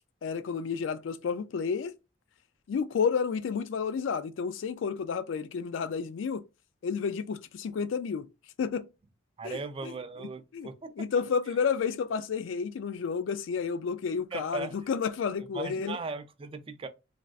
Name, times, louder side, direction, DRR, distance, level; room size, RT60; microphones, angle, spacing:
voice 1, 0.2-1.9 2.7-6.4 6.8-8.3 8.6-8.9 9.4-9.9 10.5-10.7 11.0-16.0, left 6 dB, 80° left, 0.3 m, -31 dB
voice 2, 9.4-11.1 14.3-14.8 15.5-16.9, right 4 dB, 30° right, 0.4 m, -38 dB
3.3 x 2.5 x 2.3 m
head